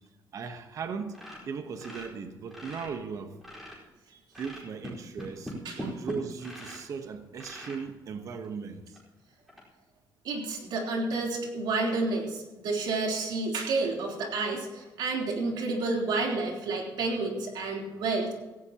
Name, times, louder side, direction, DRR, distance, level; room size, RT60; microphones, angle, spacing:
voice 1, 0.3-3.4 4.4-9.0, right 5 dB, 45° right, 7 dB, 1.1 m, -38 dB
sound 1, 1.1-2.9 3.3-3.9 4.3-6.9 7.4-7.8 8.4-8.5 8.9-9.0 9.5-9.6, equal, 5° right, 4.5 m, -41 dB
voice 2, 10.2-18.3, right 3 dB, 70° right, 0 dB, 3.5 m, -30 dB
17.5 x 16.0 x 2.9 m, 1.2 s
cardioid pair, 155°, 8 cm